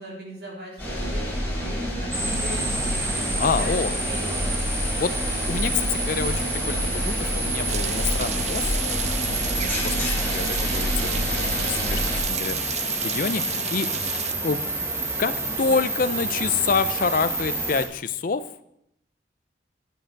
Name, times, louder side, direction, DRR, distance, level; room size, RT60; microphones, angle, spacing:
voice 1, 0.0-4.6 11.3-11.8, right 1 dB, 55° right, -2 dB, 3.2 m, -39 dB
sound 1, 0.8-12.2, equal, 10° left, 4.3 m, -28 dB
sound 2, 2.1-17.8, right 2 dB, 15° right, 1.6 m, -29 dB
voice 2, 3.4-3.9 5.0-5.2 5.5-8.8 9.3-13.9 14.4-14.6 15.2-18.5, left 5 dB, 50° left, 14 dB, 0.4 m, -27 dB
sound 3, 7.7-14.3, right 10 dB, 35° right, 0.4 m, -33 dB
10.0 x 9.2 x 4.6 m, 0.77 s
head